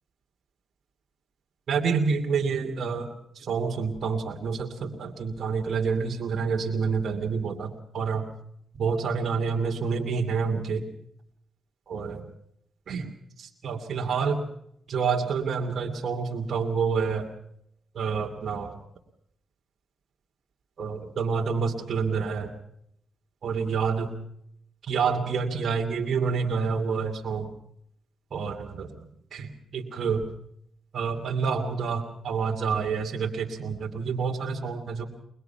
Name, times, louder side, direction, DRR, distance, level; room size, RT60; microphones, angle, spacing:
voice 1, 1.7-8.3 8.8-10.9 11.9-12.2 12.9-13.1 13.4-14.5 14.9-17.3 17.9-18.7 20.8-22.5 23.4-24.1 24.8-27.5 28.3-29.0 29.3-30.2 30.9-35.1, right 5 dB, 65° right, 1 dB, 2.7 m, -28 dB
23.5 x 21.0 x 5.9 m, 0.72 s
cardioid pair, 75°, 0 cm